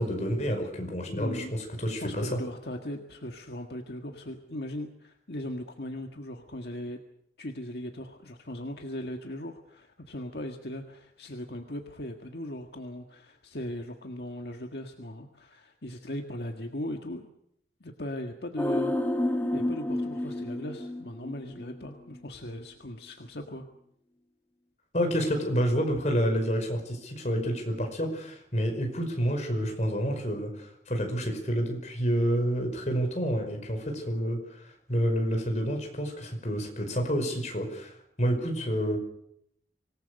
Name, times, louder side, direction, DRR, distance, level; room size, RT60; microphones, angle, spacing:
voice 1, 0.0-2.4 24.9-39.0, equal, 40° left, 4 dB, 5.3 m, -29 dB
voice 2, 1.1-1.5 2.0-7.0 7.4-17.3 17.8-18.9 19.5-23.7, left 1 dB, 70° left, 3 dB, 1.7 m, -38 dB
sound 1, 18.6-21.9 22.1-22.2, left 1 dB, 10° left, 1.7 m, -30 dB
25.5 x 19.0 x 6.6 m, 0.74 s
head